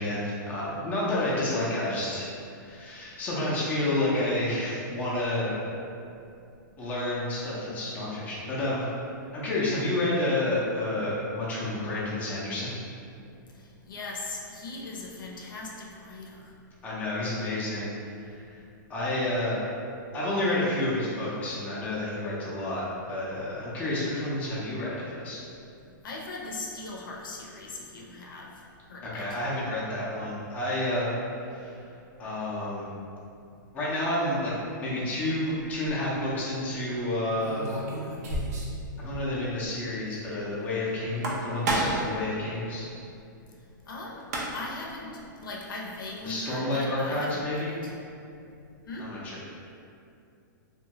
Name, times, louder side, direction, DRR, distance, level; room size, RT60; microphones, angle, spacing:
voice 1, 0.0-2.3 2.6-5.6 6.8-8.9 9.3-12.7 16.8-17.9 18.2-18.6 18.9-19.6 20.1-25.4 29.1-31.1 31.5-31.8 32.2-32.9 33.7-34.5 34.8-37.6 39.0-42.9 46.2-47.7 49.0-49.4, left 1 dB, 15° left, -7 dB, 0.5 m, -30 dB
voice 2, 13.8-16.5 26.0-28.5 28.9-29.4 43.9-44.2 44.5-47.9 48.9-49.1, left 2 dB, 85° left, -3 dB, 0.6 m, -39 dB
sound 1, 35.6-35.9 37.4-38.8 39.1-39.2 39.5-39.6 41.0-42.1 43.9-44.0 44.2-44.8, right 1 dB, 50° right, 0.5 m, -30 dB
2.8 x 2.2 x 2.8 m, 2.6 s
hypercardioid pair, 155°, 11 cm